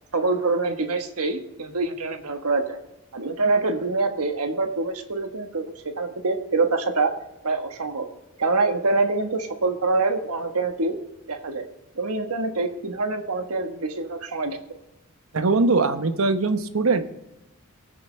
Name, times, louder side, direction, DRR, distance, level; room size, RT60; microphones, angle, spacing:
voice 1, 0.1-2.8 3.1-5.7 6.0-7.1 7.4-8.1 8.4-10.9 11.3-11.6 12.0-14.6, right 3 dB, 90° right, 6 dB, 1.4 m, -25 dB
voice 2, 15.3-17.1, right 3 dB, 70° right, 9 dB, 0.9 m, -21 dB
20.0 x 6.9 x 3.4 m, 0.97 s
head